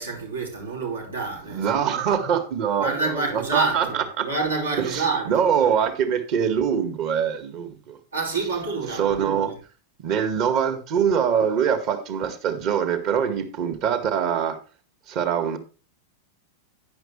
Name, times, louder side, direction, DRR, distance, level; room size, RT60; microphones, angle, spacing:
voice 1, 0.0-1.9 2.8-5.7 8.1-9.5, right 3 dB, 75° right, 4.7 m, -28 dB
voice 2, 1.5-4.3 4.8-8.0 8.9-9.5 10.0-14.6 15.1-15.6, right 8 dB, 40° right, 1.8 m, -24 dB
10.5 x 10.5 x 3.2 m
figure-of-eight pair, 90°, 0 cm